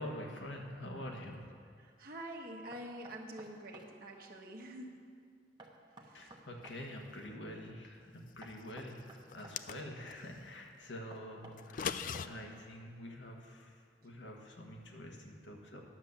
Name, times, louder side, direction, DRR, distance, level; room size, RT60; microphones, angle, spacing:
voice 1, 0.0-1.5 6.1-12.0 12.2-15.8, left 1 dB, 85° left, 1 dB, 1.5 m, -46 dB
voice 2, 1.8-5.0 6.0-6.3, right 1 dB, 55° right, 0 dB, 1.3 m, -47 dB
Knock, 2.7-3.9 5.6-6.8 8.4-9.6 11.1-12.5, right 2 dB, 25° right, 0.9 m, -54 dB
sound 1, 9.3-10.2 11.6-12.3, left 7 dB, 45° left, 0.3 m, -39 dB
10.5 x 7.2 x 6.7 m, 2.1 s
head